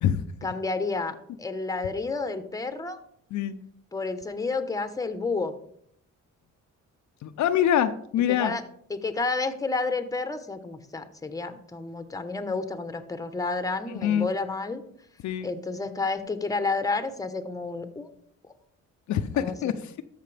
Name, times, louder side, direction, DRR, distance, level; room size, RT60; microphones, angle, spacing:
voice 1, 0.4-3.0 3.9-5.6 8.4-8.6 8.9-14.8 15.4-18.1 19.3-19.7, left 3 dB, 10° left, 9 dB, 1.0 m, -30 dB
voice 2, 7.2-8.6 13.9-14.3 15.2-15.5 19.1-20.0, left 10 dB, 70° left, 9 dB, 0.7 m, -25 dB
13.0 x 5.9 x 3.4 m, 0.66 s
cardioid pair, 90°, 30 cm